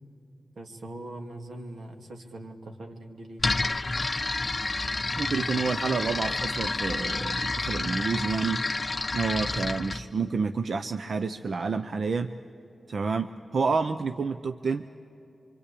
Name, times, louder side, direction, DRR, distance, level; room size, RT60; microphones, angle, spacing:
voice 1, 0.6-3.5, right 1 dB, 85° right, 3 dB, 2.4 m, -41 dB
sound 1, 3.4-10.0, left 3 dB, 30° left, 0.8 m, -29 dB
voice 2, 5.2-8.6 9.1-12.3 12.9-14.9, right 4 dB, 60° right, 9 dB, 0.6 m, -29 dB
25.5 x 25.0 x 8.5 m, 2.8 s
wide cardioid pair, 125°, 0 cm